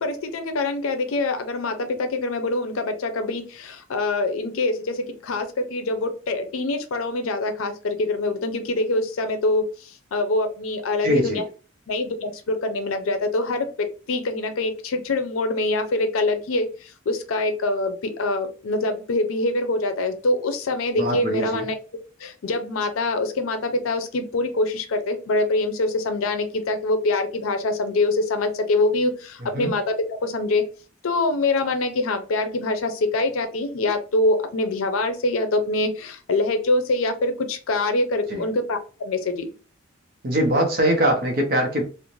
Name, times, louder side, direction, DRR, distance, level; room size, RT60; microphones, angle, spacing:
voice 1, 0.0-9.6 10.1-11.4 11.9-16.7 17.1-21.7 22.2-29.9 30.2-30.6 31.0-39.5, left 2 dB, 90° left, 7 dB, 0.5 m, -24 dB
voice 2, 11.0-11.4 21.0-21.7 29.4-29.7 38.3-38.4 40.2-41.8, equal, 45° right, 1 dB, 0.6 m, -22 dB
2.5 x 2.1 x 3.0 m, 0.35 s
head